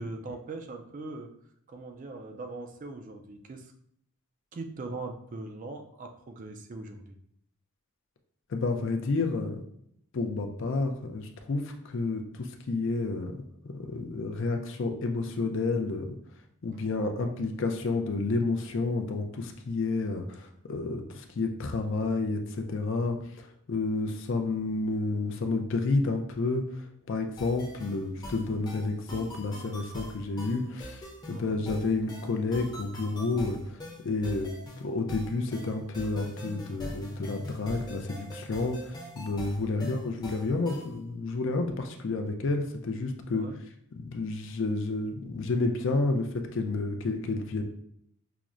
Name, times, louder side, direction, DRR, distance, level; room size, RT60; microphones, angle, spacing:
voice 1, 0.0-1.3 1.7-3.7 4.5-7.2 31.3-31.6 39.6-40.0 43.3-43.6, right 2 dB, 35° right, 4 dB, 0.3 m, -41 dB
voice 2, 8.5-9.6 10.1-16.2 16.6-43.5 43.9-47.6, left 3 dB, 55° left, 5 dB, 0.4 m, -30 dB
sound 1, 27.4-41.0, equal, 20° left, 0.6 m, -43 dB
5.8 x 2.0 x 2.4 m, 0.70 s
head